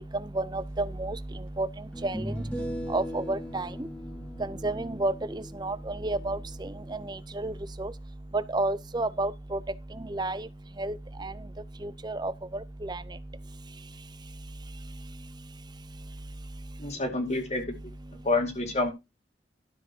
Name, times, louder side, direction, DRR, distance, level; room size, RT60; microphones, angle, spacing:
voice 1, 0.4-1.2 1.6-1.7 2.0-2.3 2.9-3.7 4.6-6.7 7.1-7.5 7.8-7.9 8.5-9.6 10.1-10.5 10.8-10.9 11.2-11.3 11.8-12.3 12.8-13.0, right 2 dB, 25° right, 0.6 m, -30 dB
sound 1, 0.8-0.9 1.9-7.2, equal, 5° left, 2.1 m, -39 dB
voice 2, 16.8-17.7 18.1-18.9, left 2 dB, 35° left, 2.3 m, -28 dB
12.5 x 6.5 x 4.4 m
head